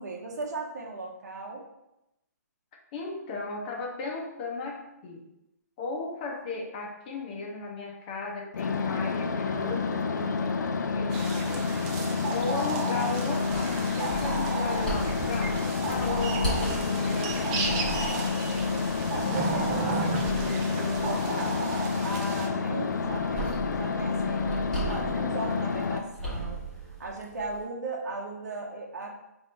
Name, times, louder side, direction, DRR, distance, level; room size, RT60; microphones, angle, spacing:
voice 1, 0.0-1.6 19.1-21.7 22.0-24.5 24.9-26.6 27.0-29.1, right 2 dB, 70° right, 0 dB, 0.9 m, -37 dB
voice 2, 2.9-5.2 5.8-11.7 12.0-18.1, left 3 dB, 30° left, -1 dB, 0.8 m, -36 dB
sound 1, 8.5-26.0, left 4 dB, 85° left, 0.5 m, -29 dB
sound 2, 11.1-22.5, right 4 dB, 25° right, 0.5 m, -34 dB
sound 3, 13.5-27.6, right 2 dB, 5° left, 1.2 m, -39 dB
4.9 x 2.7 x 3.3 m, 0.89 s
hypercardioid pair, 150°, 9 cm